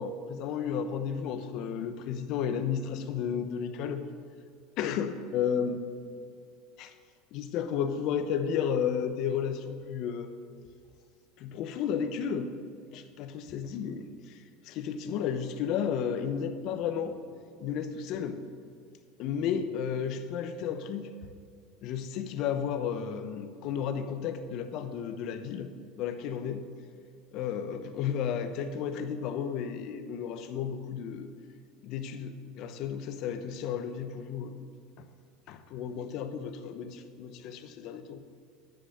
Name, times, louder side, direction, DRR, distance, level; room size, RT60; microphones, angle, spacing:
voice 1, 0.0-4.1 4.8-5.8 6.8-6.9 7.3-10.3 11.4-12.6 12.9-17.2 17.6-18.4 19.2-21.1 21.8-26.7 27.3-31.3 31.8-34.6 35.0-35.1 35.5-38.2, left 7 dB, 60° left, 9 dB, 0.8 m, -33 dB
10.5 x 6.4 x 6.6 m, 2.2 s
supercardioid pair, 105°, 0 cm